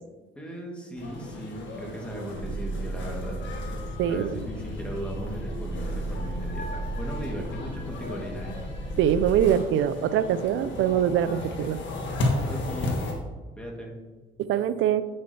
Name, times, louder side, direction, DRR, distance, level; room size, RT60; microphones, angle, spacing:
voice 1, 0.3-3.4 4.1-8.6 12.4-13.1 13.6-13.9, right 1 dB, 5° left, -1 dB, 1.8 m, -37 dB
sound 1, 1.0-13.1, left 2 dB, 70° left, 1.5 m, -35 dB
sound 2, 2.3-9.5, right 1 dB, 55° left, 1.0 m, -34 dB
voice 2, 4.0-4.4 9.0-11.8 14.5-15.0, right 9 dB, 80° right, 14 dB, 0.5 m, -23 dB
9.0 x 6.4 x 2.8 m, 1.3 s
cardioid pair, 90°, 20 cm